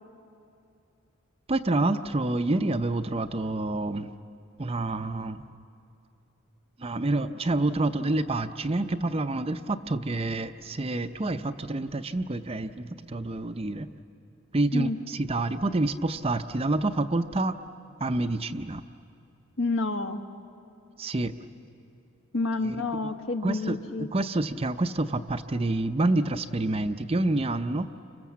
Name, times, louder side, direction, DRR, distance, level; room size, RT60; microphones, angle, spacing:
voice 1, 1.5-4.1 4.6-5.4 6.8-13.9 14.5-17.6 18.0-18.8 21.0-21.3 22.6-22.8 23.0-23.1 23.4-27.9, right 2 dB, 25° right, 9 dB, 0.5 m, -28 dB
voice 2, 19.6-20.2 22.3-24.1, left 3 dB, 65° left, 6 dB, 1.4 m, -29 dB
30.0 x 25.5 x 7.4 m, 2.6 s
head